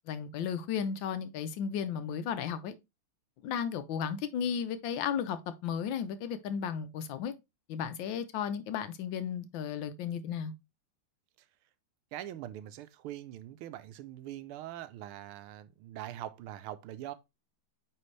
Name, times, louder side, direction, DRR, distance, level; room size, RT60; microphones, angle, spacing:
voice 1, 0.1-2.7 3.4-7.3 7.7-10.5, left 7 dB, 70° left, 1.4 m, -34 dB
voice 2, 12.1-17.1, right 13 dB, 90° right, 1.5 m, -43 dB
9.0 x 3.5 x 3.2 m
omnidirectional pair, 2.3 m